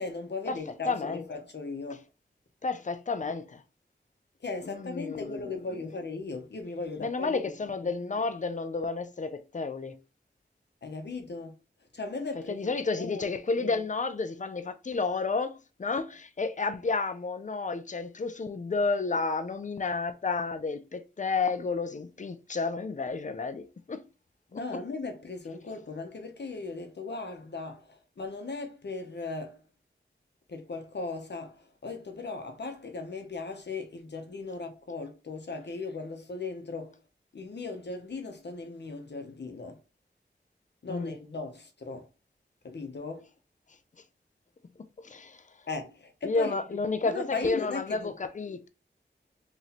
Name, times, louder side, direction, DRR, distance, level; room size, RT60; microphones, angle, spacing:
voice 1, 0.0-2.0 4.4-7.5 7.8-7.9 10.8-11.5 11.9-13.3 13.6-13.8 24.5-29.6 30.5-37.0 37.3-39.8 40.8-42.1 42.6-43.3 45.7-46.8 47.0-48.1, left 3 dB, 65° left, 0.9 m, -37 dB
voice 2, 0.9-1.2 2.6-3.6 4.6-5.5 7.0-10.0 12.5-24.1 24.5-24.6 40.9-41.1 45.0-45.4 46.2-48.7, left 4 dB, 40° left, 0.5 m, -31 dB
3.1 x 2.7 x 4.1 m
wide cardioid pair, 55°, 19 cm